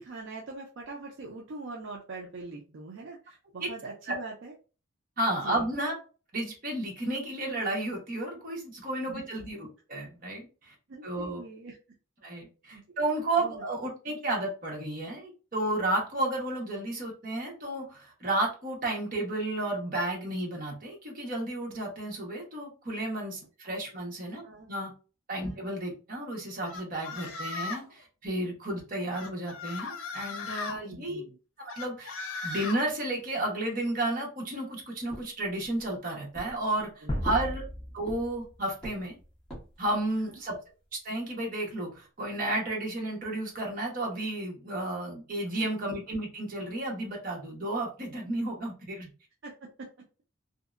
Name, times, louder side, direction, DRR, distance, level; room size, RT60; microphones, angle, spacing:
voice 1, 0.0-4.5 5.4-5.6 9.1-9.2 10.9-11.8 12.7-12.8 13.4-13.6 24.4-24.7 25.4-25.6 30.7-31.4 37.0-37.5 45.6-45.7 49.4-49.9, right 3 dB, 65° right, -1 dB, 0.4 m, -43 dB
voice 2, 5.2-5.9 6.3-10.7 11.0-11.4 12.2-24.9 25.3-31.2 31.6-37.6 37.9-39.1 39.8-40.6 40.9-49.1, right 1 dB, 45° right, -2 dB, 1.0 m, -32 dB
sound 1, 26.7-27.9 29.1-30.8 31.7-32.8, left 4 dB, 85° left, 0.5 m, -37 dB
sound 2, 35.1-35.9 36.3-36.9 37.2-38.5 38.8-39.9, right 1 dB, 5° left, 0.9 m, -43 dB
sound 3, 37.1-40.0, equal, 25° left, 0.5 m, -37 dB
2.7 x 2.1 x 2.4 m, 0.35 s
head